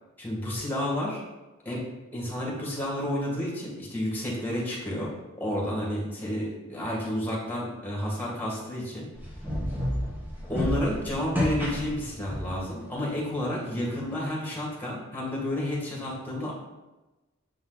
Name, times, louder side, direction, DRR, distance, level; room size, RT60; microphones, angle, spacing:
voice 1, 0.2-1.2 1.7-1.8 2.1-5.1 5.4-9.1 10.5-16.5, left 1 dB, 10° left, -4 dB, 1.8 m, -31 dB
sound 1, 9.2-12.7, left 1 dB, 10° right, 1.2 m, -30 dB
7.2 x 3.9 x 4.0 m, 1.1 s
head